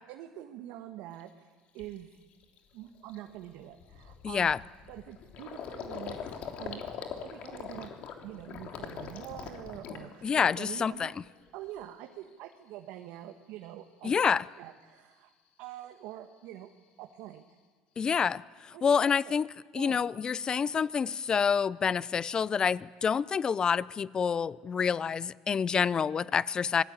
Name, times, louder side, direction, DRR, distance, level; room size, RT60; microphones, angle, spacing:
voice 1, 0.1-2.2 2.7-4.5 4.9-6.2 6.6-6.8 7.2-7.9 8.2-11.1 11.5-15.3 15.6-16.7 17.0-17.4 18.7-19.3 19.7-20.1, right 13 dB, 70° right, 1.6 m, -45 dB
Gurgling, 1.2-1.3 1.8-2.0 2.4-2.6 2.8-10.9 11.2-11.9, left 7 dB, 55° left, 3.1 m, -43 dB
voice 2, 4.2-4.6 10.2-11.1 14.0-14.4 18.0-18.4 18.8-19.5 19.7-26.8, left 6 dB, 30° left, 0.7 m, -27 dB
25.5 x 20.0 x 9.0 m
supercardioid pair, 100°, 3 cm